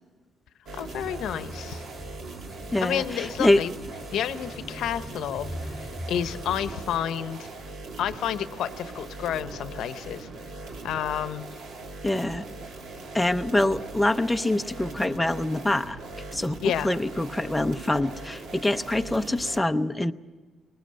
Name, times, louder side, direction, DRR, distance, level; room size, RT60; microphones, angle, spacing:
voice 1, 0.7-1.8 2.8-3.7 4.1-7.5 8.0-10.3 10.8-11.5 16.6-16.9, left 10 dB, 75° left, 12 dB, 0.8 m, -30 dB
sound 1, 0.7-19.6, right 3 dB, 70° right, 2.3 m, -40 dB
sound 2, 0.9-7.0, equal, 25° right, 2.8 m, -41 dB
voice 2, 2.7-3.6 12.0-12.5 13.1-16.0 16.3-20.1, left 1 dB, 5° left, 8 dB, 0.6 m, -25 dB
21.0 x 20.0 x 7.6 m, 1.3 s
cardioid pair, 125°, 0 cm